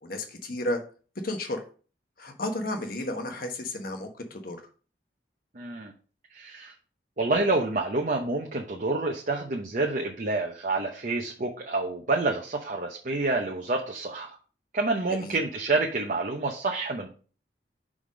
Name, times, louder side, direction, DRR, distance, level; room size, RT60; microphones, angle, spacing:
voice 1, 0.0-0.8 1.2-1.6 2.2-4.6 15.1-15.4, left 1 dB, 55° left, 5 dB, 1.3 m, -32 dB
voice 2, 5.6-5.9 6.3-6.7 7.2-14.4 14.7-17.1, right 3 dB, 45° right, 1 dB, 0.9 m, -28 dB
5.8 x 5.0 x 5.0 m, 0.39 s
head